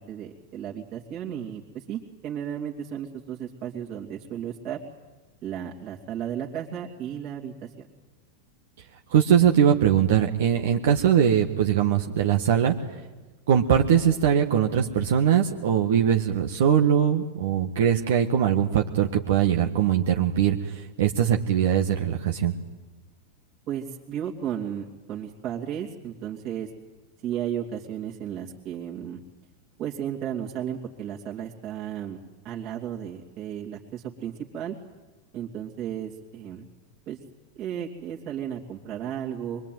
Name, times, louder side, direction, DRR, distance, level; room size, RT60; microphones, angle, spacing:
voice 1, 0.0-4.8 5.4-7.7 23.7-26.7 27.2-29.2 29.8-32.2 32.4-34.7 35.3-36.6 37.1-37.2 37.5-39.6, right 9 dB, 45° right, -3 dB, 2.9 m, -34 dB
voice 2, 9.1-12.7 13.5-22.5, right 9 dB, 65° right, 3 dB, 1.5 m, -21 dB
23.5 x 22.5 x 9.4 m, 1.2 s
hypercardioid pair, 95°, 0 cm